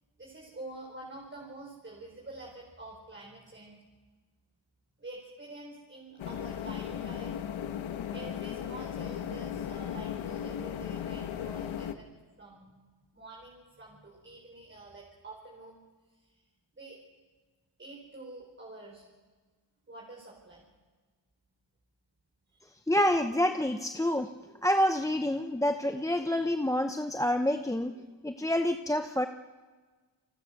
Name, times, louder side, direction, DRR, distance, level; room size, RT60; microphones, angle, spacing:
voice 1, 0.2-3.8 5.0-7.3 8.1-12.1 12.4-12.7 13.1-15.8 16.2-16.3 16.7-17.0 17.8-19.1 19.9-20.6 22.5-22.6, right 2 dB, 25° right, -2 dB, 4.9 m, -47 dB
sound 1, 6.2-12.0, left 9 dB, 90° left, 1.4 m, -36 dB
voice 2, 22.9-24.3 24.6-27.9 28.2-29.3, left 1 dB, 5° left, 6 dB, 0.8 m, -27 dB
29.0 x 22.0 x 6.6 m, 1.4 s
cardioid pair, 100°, 46 cm